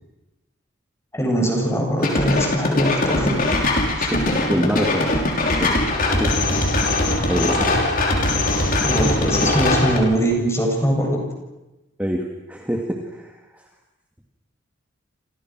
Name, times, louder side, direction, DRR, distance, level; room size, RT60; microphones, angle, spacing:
voice 1, 1.1-3.3 4.0-4.1 8.8-11.2, equal, 15° left, 1 dB, 7.8 m, -21 dB
sound 1, 2.0-10.0, left 2 dB, 50° left, 5.9 m, -21 dB
voice 2, 3.8-6.4 7.0-7.8 12.0-13.6, equal, 10° right, 1 dB, 2.4 m, -27 dB
29.5 x 27.5 x 6.3 m, 0.99 s
head